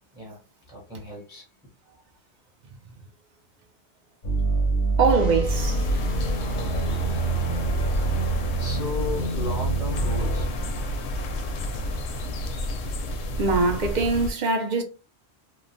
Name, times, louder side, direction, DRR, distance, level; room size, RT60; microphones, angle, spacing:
voice 1, 0.7-1.4 8.1-10.5, left 2 dB, 5° right, 0.5 m, -35 dB
sound 1, 4.2-10.5, right 2 dB, 45° left, 0.7 m, -26 dB
voice 2, 5.0-5.8 13.4-14.8, right 4 dB, 50° right, 0.6 m, -22 dB
sound 2, 5.5-14.3, left 1 dB, 75° left, 0.8 m, -31 dB
3.0 x 2.1 x 2.5 m
omnidirectional pair, 1.2 m